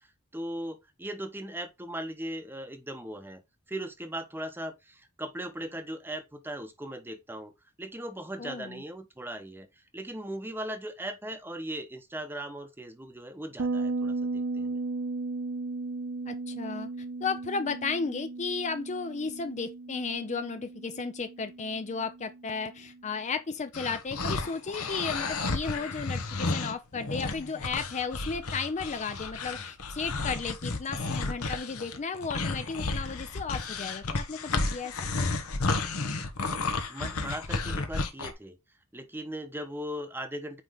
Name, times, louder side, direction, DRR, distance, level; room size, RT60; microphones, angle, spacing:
voice 1, 0.3-3.4 3.7-7.5 7.8-9.7 9.9-14.8 36.9-38.6 38.9-40.6, right 1 dB, 10° right, 0.9 m, -38 dB
voice 2, 8.4-8.8 16.2-16.9 17.2-34.9, left 4 dB, 35° left, 0.5 m, -34 dB
Bass guitar, 13.6-23.0, right 3 dB, 55° right, 0.6 m, -36 dB
sound 1, 23.7-38.3, left 3 dB, 85° left, 1.1 m, -32 dB
8.9 x 3.2 x 3.9 m
head